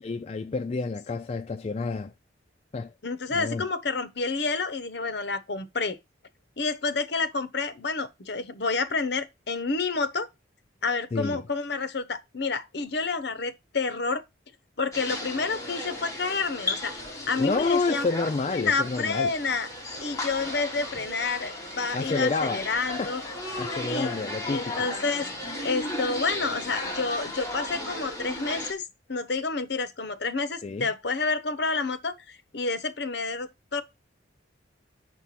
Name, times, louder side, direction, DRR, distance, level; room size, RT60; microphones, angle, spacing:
voice 1, 0.0-2.1 2.7-2.9 3.3-3.7 11.1-11.4 17.4-19.3 21.9-23.1 23.6-24.9 30.6-30.9, left 3 dB, 30° left, 0.3 m, -29 dB
voice 2, 3.0-6.0 6.6-10.3 10.8-14.2 14.8-17.0 17.3-18.1 18.5-19.7 20.0-23.2 23.8-24.1 24.5-25.3 25.6-33.8, left 4 dB, 60° left, 0.9 m, -29 dB
sound 1, 14.9-28.7, left 1 dB, 15° left, 2.3 m, -35 dB
6.8 x 4.5 x 5.7 m
head